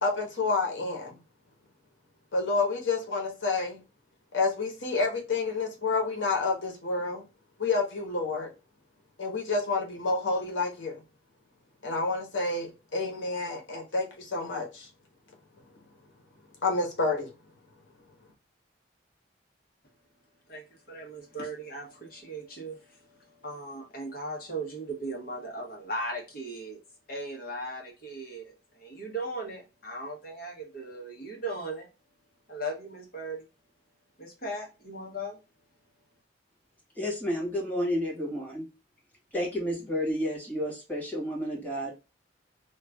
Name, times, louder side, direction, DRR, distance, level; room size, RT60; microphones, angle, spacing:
voice 1, 0.0-1.2 2.3-3.8 4.3-7.2 7.6-8.5 9.2-11.0 11.8-14.9 16.6-17.3, left 3 dB, 90° left, 1.0 m, -29 dB
voice 2, 20.5-26.8 27.1-31.9 32.5-33.4 34.2-35.4, right 1 dB, 50° left, 1.1 m, -38 dB
voice 3, 36.9-38.6 39.3-41.9, equal, 10° left, 1.7 m, -31 dB
3.1 x 2.4 x 3.4 m
head